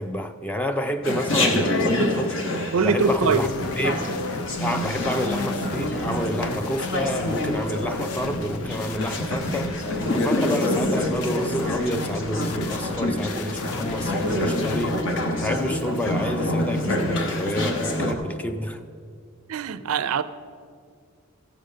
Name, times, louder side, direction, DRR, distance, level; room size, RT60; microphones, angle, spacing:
voice 1, 0.0-3.5 3.8-4.2 4.6-9.7 10.1-15.0 15.4-18.8, equal, 5° left, 0.4 m, -29 dB
Chatter, 1.0-18.1, left 1 dB, 60° left, 1.0 m, -26 dB
voice 2, 2.7-3.4 19.5-20.2, right 5 dB, 75° right, 0.4 m, -22 dB
sound 1, 3.0-15.0, left 4 dB, 85° left, 0.6 m, -35 dB
14.5 x 5.1 x 6.5 m
head